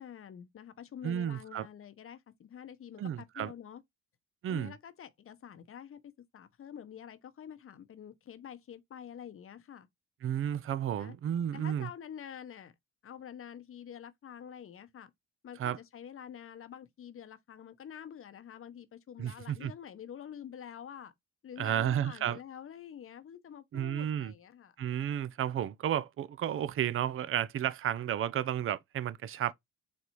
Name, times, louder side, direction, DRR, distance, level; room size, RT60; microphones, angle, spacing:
voice 1, 0.0-3.8 4.5-6.0 6.3-9.9 11.0-11.2 11.5-12.7 13.0-15.1 15.4-21.1 21.4-24.8, left 9 dB, 45° left, 0.8 m, -47 dB
voice 2, 1.0-1.7 3.0-3.5 4.4-4.7 10.2-11.9 15.6-15.8 19.2-19.7 21.6-22.4 23.7-24.3 24.8-29.5, right 10 dB, 45° right, 0.5 m, -32 dB
4.3 x 3.2 x 2.9 m
cardioid pair, 90°, 30 cm